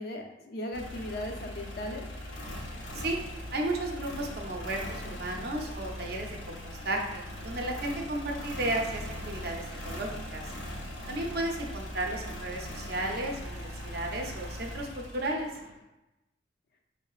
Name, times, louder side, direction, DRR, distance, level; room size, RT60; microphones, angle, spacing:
voice 1, 0.0-2.1, left 1 dB, 55° left, 3 dB, 0.4 m, -37 dB
sound 1, 0.7-15.8, left 1 dB, 85° left, 0.8 m, -40 dB
voice 2, 3.5-6.6 6.8-10.5 11.1-15.5, right 1 dB, 55° right, 1 dB, 0.5 m, -34 dB
3.6 x 3.2 x 2.4 m, 0.96 s
head